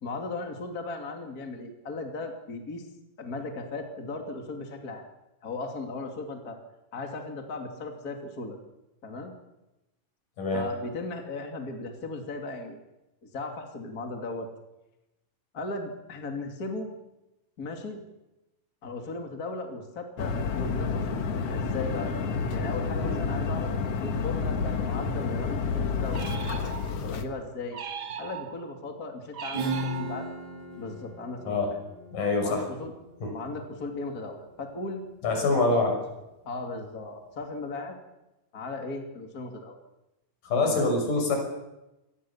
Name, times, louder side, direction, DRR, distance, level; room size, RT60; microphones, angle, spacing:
voice 1, 0.0-2.9 3.2-5.1 5.4-6.6 6.9-8.6 9.0-9.3 10.5-12.8 13.2-14.5 15.5-16.9 17.6-18.0 18.8-22.1 22.5-23.7 24.0-26.3 27.0-27.8 28.2-30.3 30.8-31.8 32.4-32.9 33.3-35.0 35.7-35.9 36.4-38.0 38.5-39.8 40.6-40.9, left 3 dB, 30° left, 3 dB, 2.8 m, -37 dB
voice 2, 10.4-10.7 23.0-23.2 31.5-31.7 32.1-32.7 33.2-33.4 35.2-35.9 40.4-41.4, left 3 dB, 75° left, 3 dB, 7.7 m, -25 dB
sound 1, 20.2-27.3, left 5 dB, 55° left, 2.3 m, -29 dB
sound 2, 26.1-27.1 27.7-28.8 29.3-30.5, right 8 dB, 80° right, 0.9 m, -39 dB
Acoustic guitar / Strum, 29.5-34.9, right 1 dB, 60° right, 7.5 m, -37 dB
26.5 x 19.0 x 7.3 m, 0.96 s
omnidirectional pair, 3.9 m